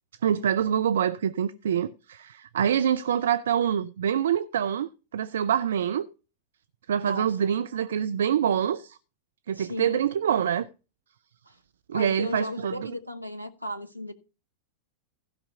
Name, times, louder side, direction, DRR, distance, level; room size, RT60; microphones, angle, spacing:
voice 1, 0.2-6.1 6.9-9.0 9.5-10.7 11.9-12.7, right 9 dB, 65° right, 0.4 m, -25 dB
voice 2, 7.0-7.5 9.5-10.0 11.5-11.6 11.9-14.1, left 1 dB, 90° right, 1.1 m, -36 dB
15.5 x 5.8 x 5.5 m
figure-of-eight pair, 90°, 0 cm